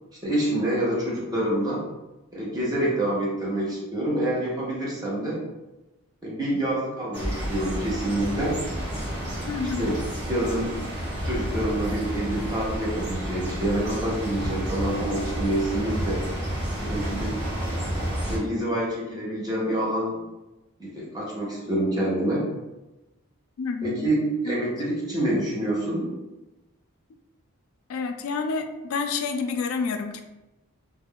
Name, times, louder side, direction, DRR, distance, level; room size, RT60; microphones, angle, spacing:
voice 1, 0.2-1.8 2.3-5.4 6.2-8.6 9.8-10.0 10.2-10.9 11.2-16.2 16.8-17.3 17.7-18.0 18.3-20.2 20.8-22.4 23.8-26.1, right 1 dB, 15° right, -6 dB, 0.7 m, -27 dB
sound 1, 7.1-18.4, equal, 50° right, 0.8 m, -30 dB
voice 2, 9.5-9.9 23.6-24.0 24.4-24.6 27.9-30.2, left 4 dB, 70° left, 7 dB, 0.3 m, -29 dB
2.3 x 2.1 x 3.6 m, 1.0 s
head